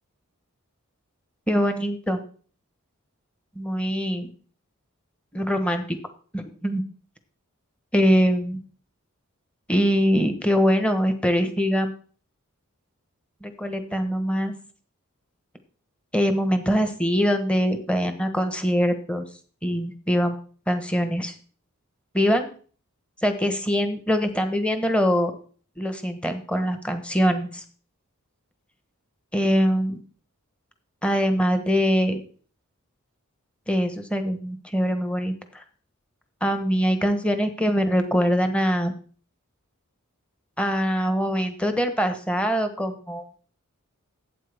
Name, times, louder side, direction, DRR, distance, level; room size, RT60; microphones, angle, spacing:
voice 1, 1.5-2.2 3.5-4.3 5.3-6.0 6.3-6.8 7.9-8.6 9.7-11.9 13.4-14.5 16.1-19.3 19.6-21.3 22.1-22.5 23.2-25.3 25.8-27.6 29.3-30.0 31.0-32.2 33.7-35.6 36.4-38.9 40.6-43.3, equal, 5° left, 7 dB, 1.0 m, -23 dB
12.0 x 8.5 x 3.5 m, 0.42 s
head